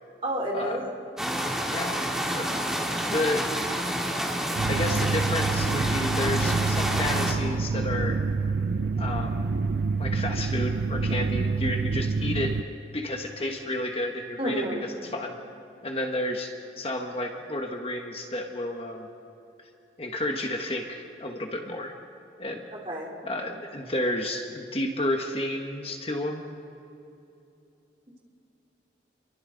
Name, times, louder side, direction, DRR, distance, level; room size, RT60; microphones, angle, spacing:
voice 1, 0.2-0.8 14.4-14.9 22.7-23.1, right 1 dB, 30° right, -3 dB, 3.5 m, -30 dB
sound 1, 1.2-7.3, equal, 5° right, 2.0 m, -29 dB
voice 2, 1.7-2.0 2.3-2.5 3.0-3.5 4.6-8.2 9.0-9.5 10.0-12.6 12.9-15.4 15.8-19.1 20.0-21.9 22.4-22.7 23.2-26.4, left 1 dB, 30° left, 3 dB, 1.3 m, -31 dB
sound 2, 4.5-12.6, right 4 dB, 65° right, 0.5 m, -27 dB
29.5 x 23.0 x 3.9 m, 2.8 s
head